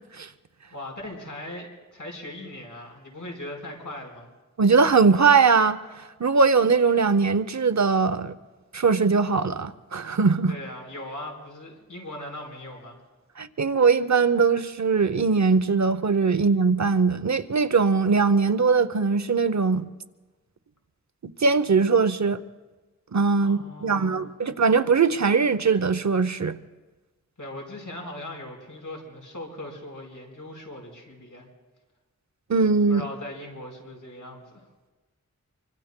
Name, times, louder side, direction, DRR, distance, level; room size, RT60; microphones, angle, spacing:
voice 1, 0.7-4.3 10.5-13.0 23.4-24.2 27.4-31.5 32.9-34.6, left 1 dB, 80° left, 4.4 m, -39 dB
voice 2, 4.6-5.8 6.2-8.4 8.7-10.5 13.4-19.9 21.4-22.4 23.1-26.6 32.5-33.0, right 4 dB, 65° right, 0.7 m, -21 dB
26.0 x 24.5 x 2.2 m
wide cardioid pair, 45°, 31 cm